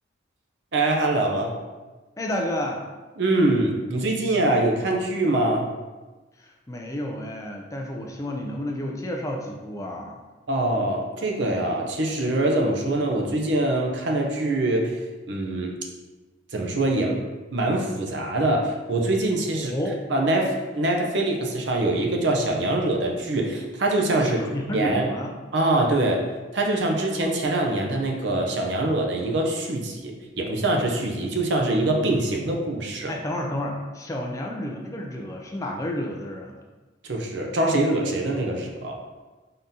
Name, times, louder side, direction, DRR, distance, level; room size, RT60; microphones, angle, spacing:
voice 1, 0.7-1.6 3.2-5.7 10.5-15.0 15.3-15.7 16.5-17.2 17.5-19.7 20.1-24.5 24.7-25.1 25.5-26.2 26.5-33.1 37.0-39.0, right 2 dB, 65° right, 1 dB, 0.6 m, -24 dB
voice 2, 2.2-2.8 6.4-10.2 19.5-20.0 24.2-25.3 33.1-36.6, left 1 dB, 15° left, 0 dB, 0.3 m, -31 dB
3.8 x 3.6 x 2.7 m, 1.2 s
head